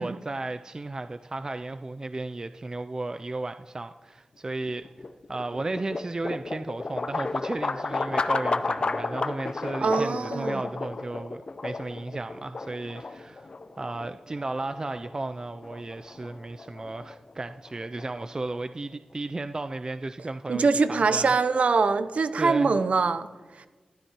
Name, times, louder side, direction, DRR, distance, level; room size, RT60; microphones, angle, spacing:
voice 1, 0.0-4.9 5.3-13.5 13.8-21.3 22.4-22.8, right 2 dB, 30° right, 9 dB, 0.3 m, -34 dB
sound 1, 4.7-18.7, left 3 dB, 45° left, 0.5 m, -33 dB
voice 2, 9.8-10.6 20.5-23.3, right 4 dB, 70° right, 11 dB, 0.6 m, -23 dB
14.0 x 12.0 x 2.9 m, 1.3 s
wide cardioid pair, 80°, 2 cm